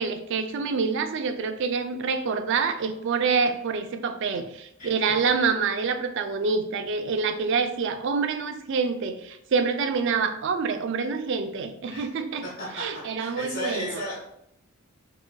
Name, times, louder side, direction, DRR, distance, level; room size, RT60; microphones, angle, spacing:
voice 1, 0.0-12.5 12.7-14.0, right 5 dB, 60° right, 8 dB, 0.3 m, -26 dB
voice 2, 12.4-12.8 13.2-14.2, equal, 55° left, -6 dB, 1.2 m, -34 dB
4.7 x 2.4 x 2.3 m, 0.75 s
head